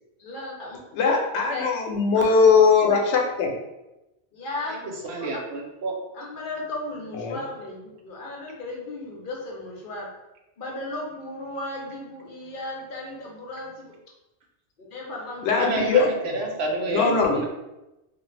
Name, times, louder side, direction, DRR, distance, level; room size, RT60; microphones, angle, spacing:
voice 1, 0.2-0.8 1.5-1.6 2.4-3.0 4.3-5.0 6.1-10.1 10.6-13.9 14.8-16.1, left 2 dB, 55° left, -2 dB, 0.8 m, -35 dB
voice 2, 0.9-3.5 7.2-7.4 15.4-16.3 16.9-17.4, left 5 dB, 85° left, 1 dB, 0.9 m, -20 dB
voice 3, 4.6-5.9 15.6-17.5, right 2 dB, 70° right, 1 dB, 0.9 m, -29 dB
2.7 x 2.3 x 3.1 m, 0.97 s
omnidirectional pair, 1.2 m